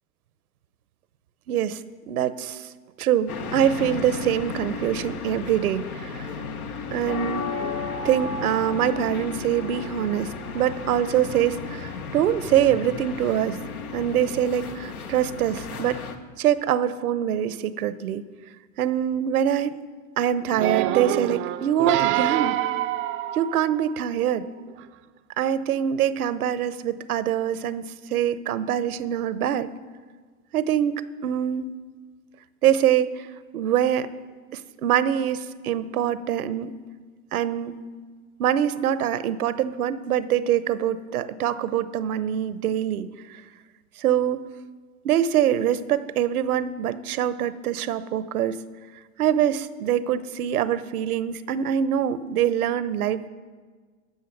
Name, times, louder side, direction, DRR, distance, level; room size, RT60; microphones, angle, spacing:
voice 1, 1.5-1.8 2.1-2.7 3.0-6.3 6.9-7.5 8.0-13.6 13.9-16.0 16.4-18.2 18.8-19.8 20.2-22.6 23.3-24.5 25.4-29.7 30.5-31.7 32.6-33.3 33.5-34.1 34.5-36.8 37.3-37.8 38.4-43.4 44.0-44.5 45.0-48.6 49.2-53.3, right 10 dB, 85° right, 15 dB, 0.8 m, -24 dB
sound 1, 3.3-16.2, left 4 dB, 85° left, 1.4 m, -34 dB
sound 2, 20.5-24.0 24.7-24.8, right 14 dB, 30° right, 0.4 m, -26 dB
14.0 x 6.3 x 9.0 m, 1.5 s
hypercardioid pair, 110°, 43 cm